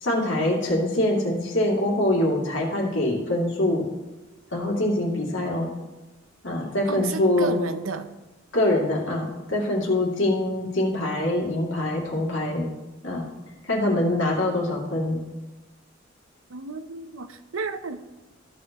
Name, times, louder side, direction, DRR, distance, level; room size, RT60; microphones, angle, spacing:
voice 1, 0.0-3.9 4.5-5.7 6.4-7.6 8.5-12.7 13.0-13.2 13.7-15.2, left 1 dB, 70° left, -2 dB, 2.4 m, -24 dB
voice 2, 6.9-8.1 16.5-18.0, right 4 dB, 85° right, 10 dB, 0.7 m, -32 dB
14.0 x 7.2 x 2.9 m, 1.1 s
head